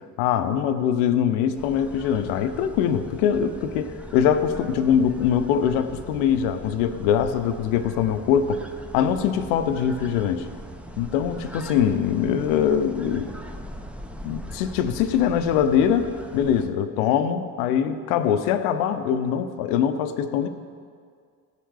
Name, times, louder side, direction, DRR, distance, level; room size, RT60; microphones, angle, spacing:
voice 1, 0.2-8.6 8.9-10.5 11.0-13.3 14.2-20.5, left 8 dB, 65° left, 10 dB, 0.8 m, -23 dB
sound 1, 1.6-16.7, equal, 5° right, 0.8 m, -40 dB
16.0 x 6.7 x 4.9 m, 2.1 s
figure-of-eight pair, 50°, 47 cm